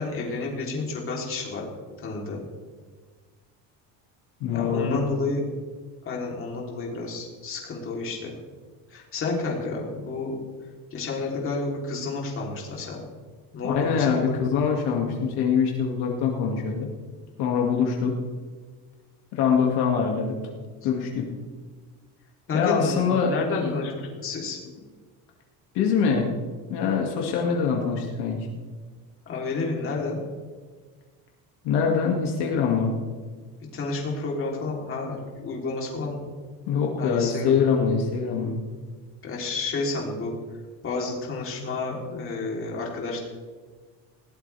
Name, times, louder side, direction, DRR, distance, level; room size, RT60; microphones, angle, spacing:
voice 1, 0.0-1.7 2.0-2.4 4.5-5.4 6.1-8.3 8.9-10.4 10.9-13.0 13.5-14.4 22.5-24.6 29.3-30.2 33.7-36.2 37.0-37.6 39.2-40.3 40.8-43.2, left 3 dB, 30° left, -2 dB, 3.6 m, -30 dB
voice 2, 4.4-5.0 13.6-16.9 17.4-18.2 19.3-20.4 20.8-21.3 22.5-23.7 25.7-26.3 26.7-28.5 31.6-32.9 36.7-38.6, left 6 dB, 70° left, 0 dB, 2.5 m, -24 dB
20.0 x 18.0 x 3.5 m, 1.4 s
cardioid pair, 175°, 41 cm